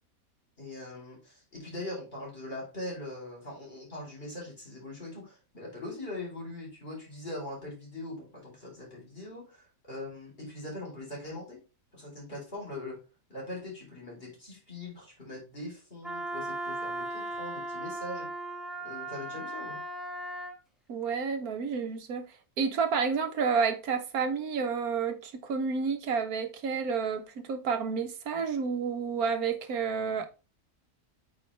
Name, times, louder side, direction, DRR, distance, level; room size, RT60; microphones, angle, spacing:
voice 1, 0.6-11.6 11.9-13.0 13.3-18.3 18.8-19.8, left 1 dB, 40° left, 4.1 m, -41 dB
Wind instrument woodwind instrument, 16.0-20.6, right 1 dB, ahead, 1.0 m, -37 dB
voice 2, 20.9-22.3 22.6-30.3, right 5 dB, 75° right, 1.5 m, -30 dB
8.5 x 4.7 x 3.3 m
omnidirectional pair, 1.6 m